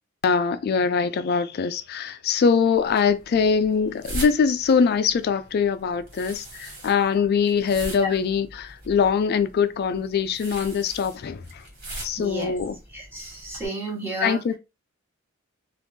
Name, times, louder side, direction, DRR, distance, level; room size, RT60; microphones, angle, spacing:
voice 1, 0.2-11.6 12.0-12.8 14.2-14.6, left 6 dB, 50° left, 0.3 m, -23 dB
sound 1, 2.7-13.7, right 1 dB, 50° right, 1.9 m, -41 dB
voice 2, 12.2-12.5 12.9-14.4, right 1 dB, 10° right, 1.2 m, -31 dB
3.5 x 2.4 x 2.6 m
head